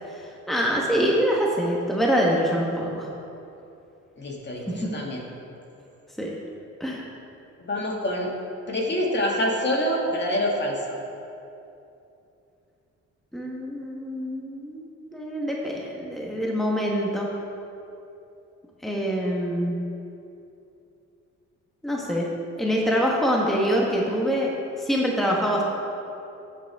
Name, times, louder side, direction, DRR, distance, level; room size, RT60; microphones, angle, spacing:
voice 1, 0.1-3.1 4.7-4.8 6.2-6.4 6.8-7.0 13.3-14.8 15.1-17.3 18.8-19.7 21.8-22.3 22.6-24.5 24.8-25.6, equal, ahead, -2 dB, 1.3 m, -25 dB
voice 2, 4.2-5.2 7.6-8.3 8.7-11.0, equal, 35° left, -2 dB, 2.1 m, -26 dB
13.5 x 8.0 x 3.6 m, 2.7 s
cardioid pair, 90°, 30 cm